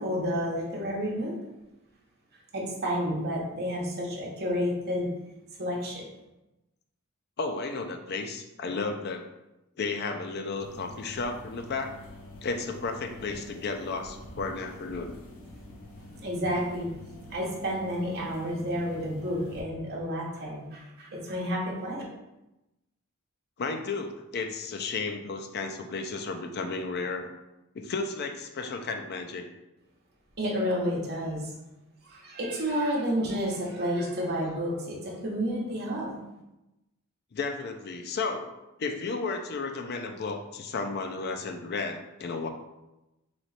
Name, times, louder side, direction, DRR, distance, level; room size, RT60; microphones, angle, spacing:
voice 1, 0.0-1.3 2.5-5.1 5.6-6.1 16.0-16.9 17.3-22.0 30.4-31.5 32.0-36.2, equal, 50° right, -3 dB, 1.0 m, -30 dB
voice 2, 7.4-9.3 9.8-12.0 12.4-15.1 23.6-27.3 27.7-29.5 37.3-38.5 38.8-42.5, left 4 dB, 50° left, 5 dB, 0.4 m, -33 dB
sound 1, 10.6-19.6, left 1 dB, 70° left, 0.8 m, -47 dB
3.2 x 3.1 x 4.0 m, 0.95 s
head